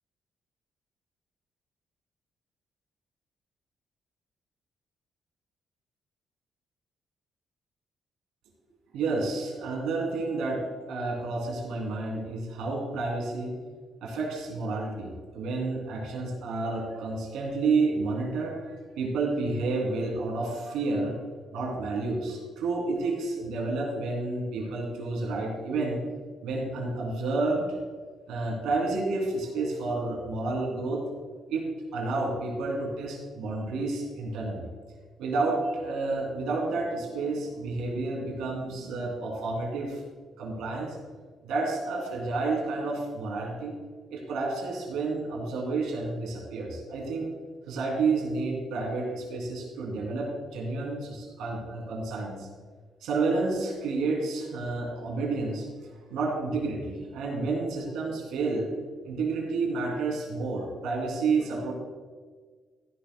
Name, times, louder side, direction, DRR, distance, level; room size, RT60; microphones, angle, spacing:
voice 1, 8.9-13.5 14.0-18.7 19.0-21.2 21.5-26.0 26.4-27.7 28.3-31.0 31.5-34.7 35.2-40.0 40.4-41.0 41.4-43.7 44.1-47.3 47.7-52.5 53.0-55.7 56.1-58.7 59.0-61.7, right 3 dB, 90° right, -1 dB, 3.0 m, -30 dB
14.5 x 11.0 x 2.3 m, 1.5 s
cardioid pair, 90°, 0 cm